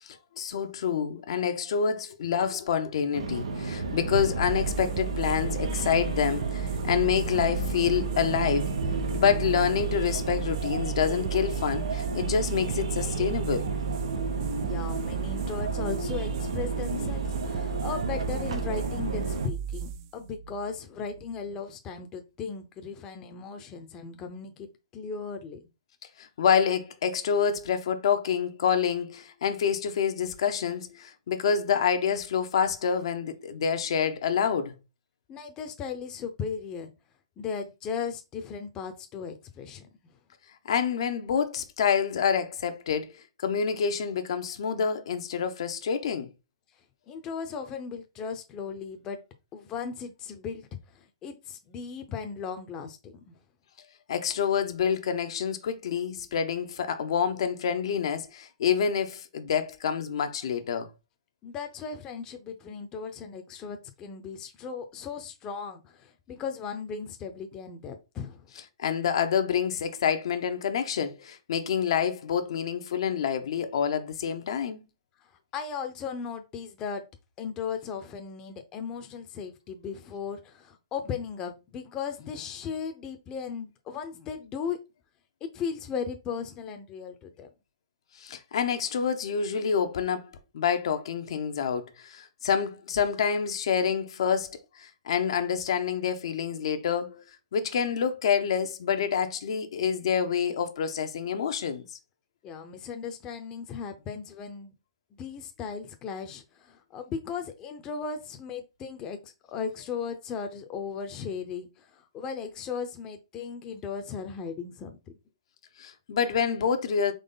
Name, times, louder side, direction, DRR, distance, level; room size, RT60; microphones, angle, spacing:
voice 1, 0.0-8.7 9.1-13.7 26.2-34.8 40.6-46.3 54.1-60.9 68.8-74.8 88.2-90.3 90.5-97.2 97.5-101.8 115.8-117.1, left 7 dB, 65° left, 0.7 m, -27 dB
sound 1, 3.1-19.5, right 3 dB, 85° right, 1.0 m, -32 dB
sound 2, 4.5-21.5, right 8 dB, 35° right, 0.4 m, -35 dB
voice 2, 14.6-25.6 35.3-36.9 37.4-39.9 47.1-49.2 49.5-50.7 50.9-53.3 61.4-68.5 75.5-77.0 77.4-84.8 85.4-87.5 102.4-104.7 105.1-115.0, left 6 dB, 20° left, 0.6 m, -37 dB
4.0 x 3.2 x 3.8 m
hypercardioid pair, 150°, 3 cm